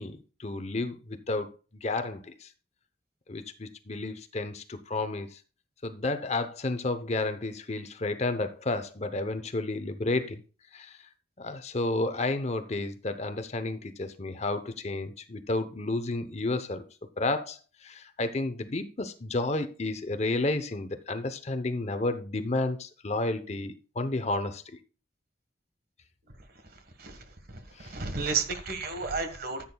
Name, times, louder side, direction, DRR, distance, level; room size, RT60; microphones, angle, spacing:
voice 1, 0.0-2.5 3.3-5.4 5.8-10.4 10.7-11.0 11.4-16.8 17.2-24.8 27.8-27.9, left 2 dB, 35° left, 0.8 m, -31 dB
voice 2, 27.8-29.7, right 4 dB, 55° right, 1.4 m, -31 dB
14.5 x 8.7 x 2.3 m
head